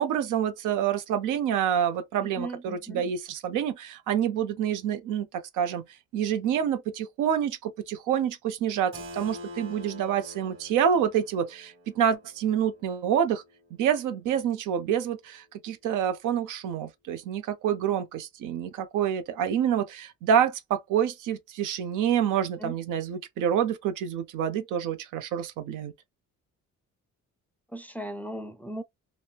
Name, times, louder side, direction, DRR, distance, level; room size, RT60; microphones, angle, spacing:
voice 1, 0.0-5.3 5.5-5.8 6.1-13.4 13.8-25.9, right 9 dB, 90° right, 0.7 m, -27 dB
voice 2, 2.2-3.0 22.6-22.8 27.7-28.8, right 1 dB, 5° left, 0.4 m, -37 dB
Keyboard (musical), 8.9-14.5, left 1 dB, 45° right, 1.4 m, -46 dB
3.0 x 2.1 x 2.3 m
cardioid pair, 90°, 30 cm